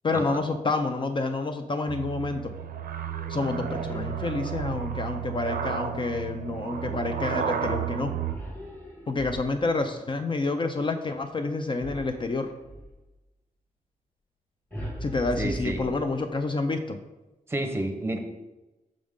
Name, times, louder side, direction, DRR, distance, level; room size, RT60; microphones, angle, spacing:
voice 1, 0.0-2.4 3.3-8.1 9.1-12.5 15.0-17.0, left 3 dB, 35° left, 7 dB, 0.4 m, -28 dB
sound 1, 1.9-8.3, right 8 dB, 85° right, 0.5 m, -32 dB
sound 2, 3.6-5.1 8.3-9.8 11.8-13.0 14.7-16.4, equal, 10° left, 1.4 m, -40 dB
voice 2, 15.4-15.8 17.5-18.2, right 1 dB, 15° right, 4 dB, 0.8 m, -30 dB
6.2 x 5.1 x 3.6 m, 1.0 s
wide cardioid pair, 135°, 15 cm